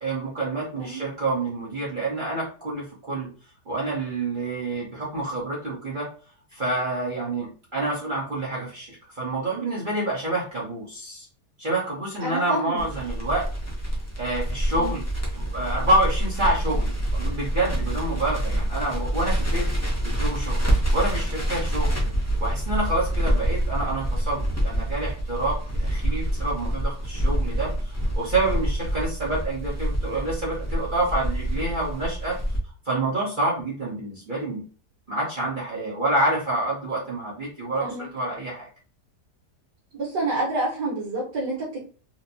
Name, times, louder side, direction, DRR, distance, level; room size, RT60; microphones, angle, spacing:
voice 1, 0.0-3.3 3.7-6.1 6.5-11.3 11.6-13.5 14.2-15.0 15.4-19.7 20.0-22.1 22.4-32.3 32.8-34.6 35.1-38.7, right 2 dB, 35° right, -5 dB, 1.0 m, -28 dB
voice 2, 12.2-12.8 14.7-15.0 37.8-38.1 39.9-41.8, right 2 dB, 80° right, -7 dB, 1.9 m, -28 dB
Crackle, 12.8-32.6, right 1 dB, 15° left, 0.5 m, -26 dB
4.3 x 2.2 x 2.7 m, 0.38 s
omnidirectional pair, 1.8 m